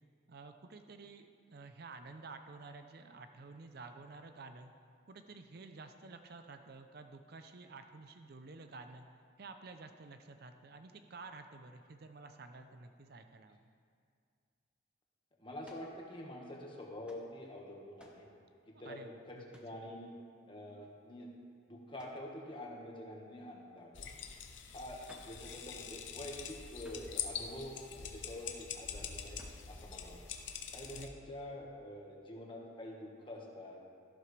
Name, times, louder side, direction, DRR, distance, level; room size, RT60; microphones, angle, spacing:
voice 1, 0.3-4.7 5.1-9.1 9.4-13.7 18.8-19.8 30.9-31.1, right 3 dB, 55° right, 7 dB, 0.6 m, -51 dB
voice 2, 15.4-18.3 18.7-19.0 19.3-20.1 20.5-21.3 21.7-24.1 24.7-29.4 29.7-30.2 30.7-33.8, left 1 dB, 25° left, -2 dB, 1.5 m, -47 dB
sound 1, 15.6-15.9 17.0-17.3 18.0-18.3 19.5-19.8 22.0-22.3 25.0-25.4 26.8-27.2 29.4-29.7, equal, 5° right, 0.9 m, -59 dB
sound 2, 23.9-31.1, left 7 dB, 75° left, 0.8 m, -44 dB
13.5 x 11.5 x 3.3 m, 2.3 s
head